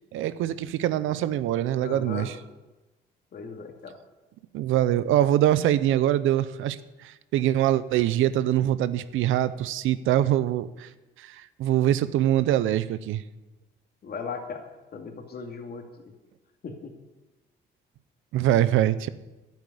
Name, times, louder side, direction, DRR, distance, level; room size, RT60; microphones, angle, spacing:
voice 1, 0.1-2.3 4.5-10.9 11.2-13.2 18.3-19.1, right 12 dB, 90° right, 16 dB, 0.7 m, -24 dB
voice 2, 1.8-2.3 3.3-4.0 14.0-15.8 16.6-16.9, left 5 dB, 55° left, 4 dB, 2.4 m, -37 dB
10.5 x 8.3 x 10.0 m, 1.1 s
cardioid pair, 90°, 20 cm